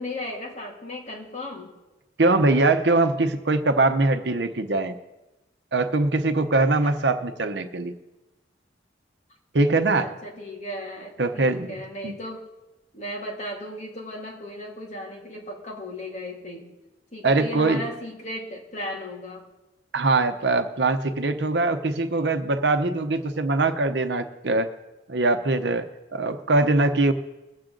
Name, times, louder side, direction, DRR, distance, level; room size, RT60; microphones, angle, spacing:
voice 1, 0.0-1.7 10.0-12.4 12.9-16.7 17.1-19.4, left 1 dB, 40° left, -2 dB, 2.4 m, -36 dB
voice 2, 2.2-4.9 5.7-7.9 9.5-10.1 11.2-11.7 12.0-12.1 17.2-17.8 19.9-24.7 25.1-27.1, right 2 dB, 75° right, 8 dB, 0.9 m, -22 dB
22.5 x 7.6 x 3.8 m, 1.0 s
head